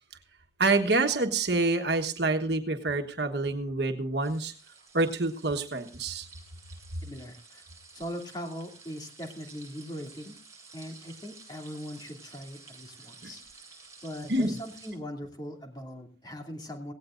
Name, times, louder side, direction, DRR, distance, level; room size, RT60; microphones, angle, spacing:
voice 1, 0.6-4.5 4.9-6.3 13.2-13.3 14.3-14.6, right 2 dB, 70° right, 5 dB, 1.3 m, -27 dB
sound 1, 4.2-14.9, right 4 dB, 20° right, 7.6 m, -52 dB
voice 2, 7.0-7.6 7.9-10.4 10.7-13.4 14.0-16.9, equal, 25° left, 2 dB, 2.6 m, -40 dB
17.5 x 17.0 x 2.5 m, 0.38 s
head